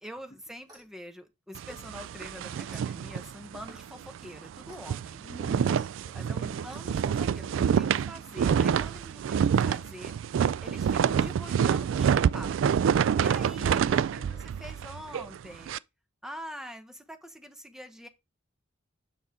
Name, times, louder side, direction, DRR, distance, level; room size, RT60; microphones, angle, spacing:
voice 1, 0.0-5.2 6.1-10.1 10.6-12.8 13.2-14.0 14.4-15.7 16.2-18.1, equal, 5° right, 1.0 m, -45 dB
Clock, 0.6-1.0 1.6-1.9 2.7-2.9 3.6-3.9 4.7-4.9 5.6-5.9 6.7-6.8 7.6-7.9, right 1 dB, 20° right, 3.4 m, -53 dB
sound 1, 1.5-3.8 4.1-4.3 4.6-15.8, right 7 dB, 70° right, 0.3 m, -27 dB
voice 2, 5.2-6.6 13.9-14.4, left 1 dB, 35° left, 1.3 m, -51 dB
6.6 x 6.2 x 3.7 m
head